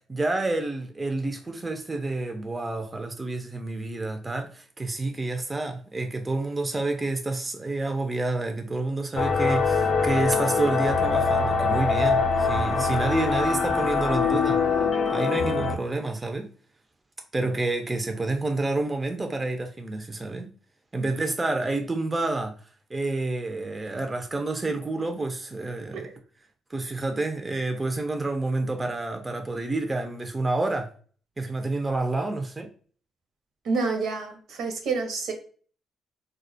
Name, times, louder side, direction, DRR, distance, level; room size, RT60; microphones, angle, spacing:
voice 1, 0.1-14.6 15.1-16.5 17.3-20.5 20.9-22.5 22.9-26.1 26.7-30.9 31.4-32.7, right 2 dB, 20° right, 0.3 m, -29 dB
sound 1, 9.2-15.8, left 4 dB, 55° left, 0.4 m, -23 dB
voice 2, 33.6-35.3, right 4 dB, 75° right, 0.6 m, -28 dB
2.3 x 2.0 x 2.6 m
cardioid pair, 90°, 0 cm